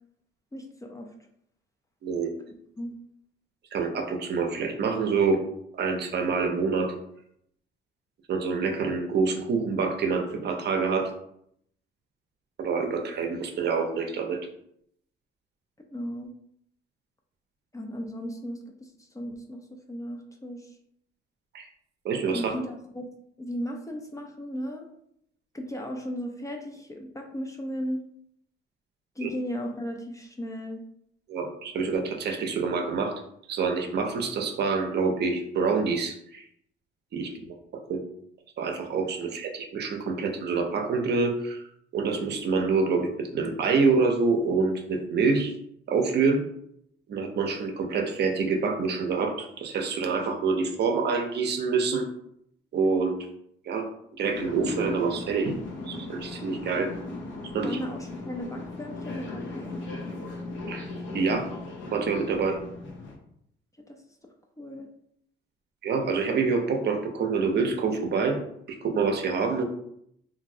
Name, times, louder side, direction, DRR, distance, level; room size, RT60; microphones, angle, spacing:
voice 1, 0.5-1.1 2.5-2.9 15.9-16.3 17.7-20.8 22.3-23.1 23.4-24.9 25.5-28.0 29.2-30.8 57.6-59.8 63.9-64.0 64.6-64.9, equal, 15° left, 2 dB, 0.4 m, -36 dB
voice 2, 3.7-5.4 5.7-6.9 8.3-11.1 12.6-14.4 21.5-21.7 22.0-22.5 29.2-29.3 31.3-33.1 33.5-36.4 37.1-37.5 37.9-38.0 38.6-41.6 41.9-45.5 45.9-46.4 47.1-52.1 52.7-53.1 53.7-53.9 54.2-55.5 55.9-56.9 57.5-57.8 60.7-60.9 61.1-61.5 61.9-62.6 65.8-68.4 68.7-69.6, right 4 dB, 55° right, 4 dB, 0.6 m, -26 dB
sound 1, 54.3-63.2, left 2 dB, 70° left, 0.7 m, -38 dB
3.0 x 2.6 x 2.6 m, 0.73 s
cardioid pair, 90°, 20 cm